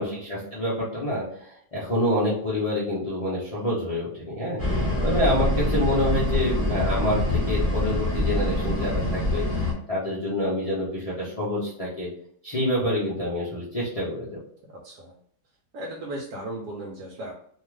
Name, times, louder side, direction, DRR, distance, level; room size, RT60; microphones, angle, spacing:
voice 1, 0.0-4.6 5.0-9.4 9.9-12.1 12.4-14.4, left 1 dB, 70° left, -9 dB, 0.3 m, -27 dB
sound 1, 4.6-9.7, left 1 dB, 10° right, 1.0 m, -25 dB
voice 2, 14.8-15.1 15.7-17.3, right 1 dB, 70° right, -2 dB, 1.0 m, -36 dB
2.7 x 2.4 x 3.1 m, 0.63 s
omnidirectional pair, 1.8 m